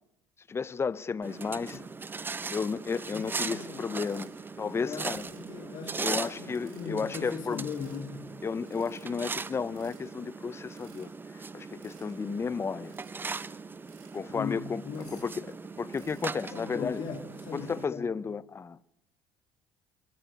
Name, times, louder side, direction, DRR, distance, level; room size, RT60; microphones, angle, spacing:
voice 1, 0.5-1.8 2.5-4.3 4.6-5.2 6.0-7.6 8.4-12.9 14.1-14.8 15.1-15.5 15.8-17.0 17.5-18.9, left 5 dB, 30° left, 0.8 m, -33 dB
sound 1, 1.2-17.8, right 4 dB, 25° right, 1.0 m, -39 dB
sound 2, 2.2-2.3 2.8-4.3 4.9-5.5 6.0-7.1 7.5-8.0 8.4-8.5 8.7-9.3 9.7-10.1 10.6-11.3 11.8-12.1 12.7-13.1 13.7-14.2 14.7-15.5 15.9-16.3, right 9 dB, 70° right, 5.6 m, -60 dB
voice 2, 3.1-3.9 4.8-8.3 14.3-15.2 16.5-18.1, left 6 dB, 55° left, 2.2 m, -39 dB
24.0 x 13.5 x 9.7 m
hypercardioid pair, 70°, 9 cm